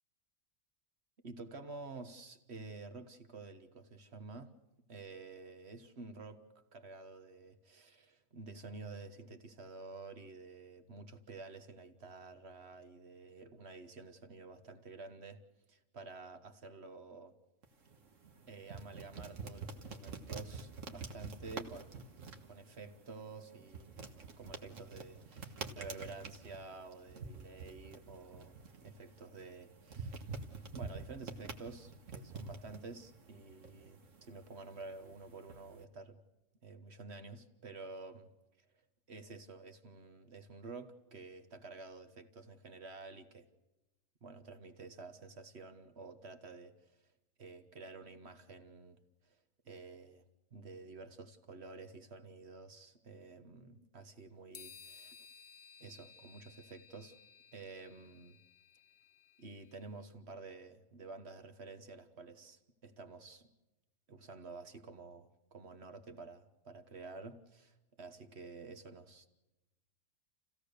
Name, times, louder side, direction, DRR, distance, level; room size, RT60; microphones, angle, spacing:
voice 1, 1.2-4.5 4.9-6.4 6.7-15.4 15.7-17.3 18.5-22.1 22.4-24.0 24.4-28.6 28.8-30.3 30.7-36.2 36.6-38.3 39.1-43.5 44.2-47.0 47.4-49.3 49.6-50.2 50.5-55.2 55.8-57.2 57.5-58.4 59.4-63.5 64.1-69.3, right 3 dB, 55° right, 1.6 m, -50 dB
sound 1, 17.6-35.8, right 4 dB, 70° right, 1.9 m, -48 dB
sound 2, 54.5-59.8, left 6 dB, 55° left, 1.2 m, -58 dB
28.5 x 16.5 x 6.7 m
omnidirectional pair, 1.4 m